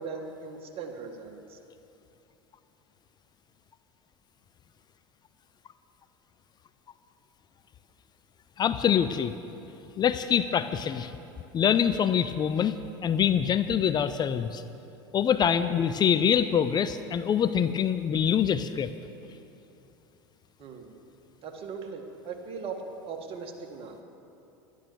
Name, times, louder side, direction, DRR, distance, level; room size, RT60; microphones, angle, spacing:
voice 1, 0.0-1.6 20.6-20.9 21.4-24.0, right 5 dB, 45° right, 3 dB, 2.0 m, -39 dB
voice 2, 8.6-9.3 10.0-11.1 11.5-12.7 13.0-14.6 15.1-18.9, left 8 dB, 30° left, 12 dB, 0.5 m, -25 dB
12.0 x 11.0 x 7.0 m, 2.9 s
hypercardioid pair, 85°, 13 cm